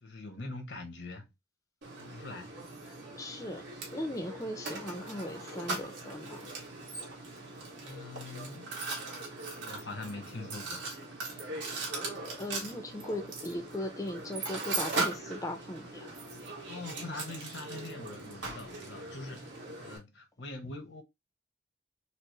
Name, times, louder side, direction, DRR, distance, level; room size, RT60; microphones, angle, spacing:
voice 1, 0.0-1.3 2.0-2.5 2.8-3.0 7.8-8.7 9.6-10.9 16.7-21.0, left 2 dB, 85° left, 1.0 m, -43 dB
Mechanisms, 1.8-20.0, right 3 dB, 85° right, 1.5 m, -39 dB
voice 2, 3.1-3.7 3.9-6.4 11.4-11.5 12.0-12.1 12.4-16.1, left 1 dB, 20° left, 0.5 m, -38 dB
4.4 x 2.0 x 3.1 m
head